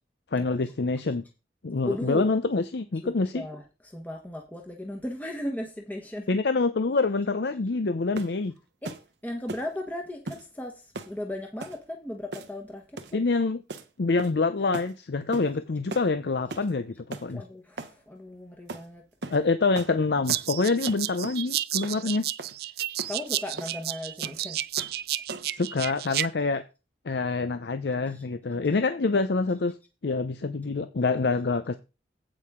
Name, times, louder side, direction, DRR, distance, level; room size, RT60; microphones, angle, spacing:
voice 1, 0.3-1.2 1.6-3.4 6.3-8.5 13.1-13.6 14.0-17.4 19.3-22.3 25.5-26.6 27.0-29.8 30.0-31.8, left 3 dB, 70° left, 0.6 m, -26 dB
voice 2, 1.8-2.3 3.0-6.3 8.8-9.0 9.2-13.2 17.3-19.0 22.0-22.1 23.1-24.6 28.1-28.2, left 1 dB, 10° left, 1.2 m, -36 dB
sound 1, 8.2-8.4 8.9-9.1 9.5-9.7 10.3-10.5 11.0-11.2 11.6-11.8 12.3-12.6 13.0-13.2 13.7-13.9 14.2-14.5 14.7-14.9 15.3-15.5 15.9-16.1 16.5-16.7 17.1-17.3 17.8-18.0 18.7-18.9 19.2-19.4 19.8-20.0 20.3-20.5 20.9-21.4 21.8-22.0 22.4-22.6 23.0-23.2 23.6-23.8 24.2-24.4 24.8-25.0 25.3-25.6, right 3 dB, 75° right, 0.9 m, -38 dB
sound 2, 20.3-26.3, right 14 dB, 60° right, 0.4 m, -31 dB
8.7 x 8.4 x 3.7 m
head